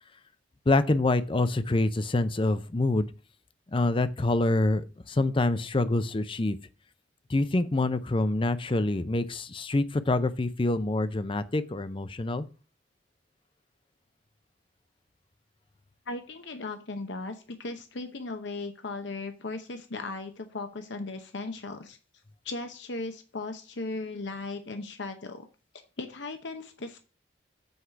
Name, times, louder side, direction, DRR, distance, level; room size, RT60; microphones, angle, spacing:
voice 1, 0.7-3.1 3.7-6.6 7.3-12.4, left 2 dB, 25° left, 0.5 m, -26 dB
voice 2, 16.1-22.0 22.4-25.5 26.0-27.0, left 3 dB, 65° left, 0.8 m, -37 dB
8.0 x 4.8 x 5.8 m
head